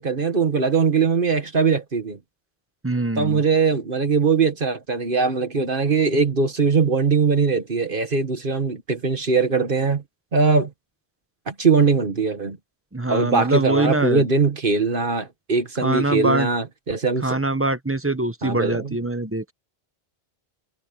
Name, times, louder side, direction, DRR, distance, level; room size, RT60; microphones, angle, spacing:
voice 1, 0.0-2.2 3.2-10.0 10.3-10.7 11.5-12.6 13.1-17.4 18.4-19.0, right 4 dB, 55° right, 1.7 m, -21 dB
voice 2, 2.8-3.4 12.9-14.3 15.8-16.5 17.2-19.5, right 2 dB, 15° right, 1.0 m, -23 dB
omnidirectional pair, 1.1 m